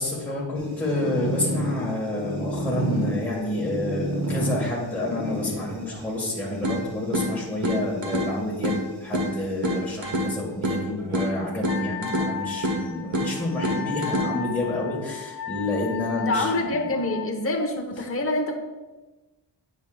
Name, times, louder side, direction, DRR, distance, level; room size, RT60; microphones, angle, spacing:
voice 1, 0.0-16.5, left 1 dB, 5° left, -5 dB, 1.5 m, -29 dB
sound 1, 0.5-10.0 10.8-11.3 11.7-11.8 12.1-12.2 13.1-14.2, equal, 35° right, 1.2 m, -33 dB
sound 2, 6.6-14.6, equal, 75° right, 1.3 m, -29 dB
Wind instrument woodwind instrument, 11.7-17.3, left 10 dB, 55° left, 0.7 m, -35 dB
voice 2, 16.1-18.5, left 2 dB, 30° left, 1 dB, 1.0 m, -26 dB
9.3 x 6.4 x 2.4 m, 1.2 s
wide cardioid pair, 135°, 45 cm